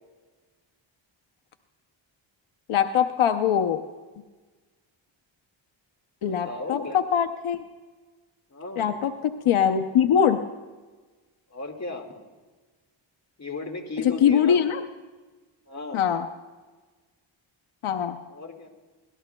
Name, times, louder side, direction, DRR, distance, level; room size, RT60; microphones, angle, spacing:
voice 1, 2.7-3.8 6.2-7.6 8.8-10.4 14.0-14.8 15.9-16.3 17.8-18.2, left 8 dB, 85° left, 7 dB, 0.7 m, -22 dB
voice 2, 6.3-7.0 8.5-9.0 11.5-12.1 13.4-14.6 15.7-16.0 18.3-18.7, left 3 dB, 35° left, 3 dB, 2.1 m, -35 dB
24.5 x 18.0 x 2.3 m, 1.3 s
wide cardioid pair, 90°, 48 cm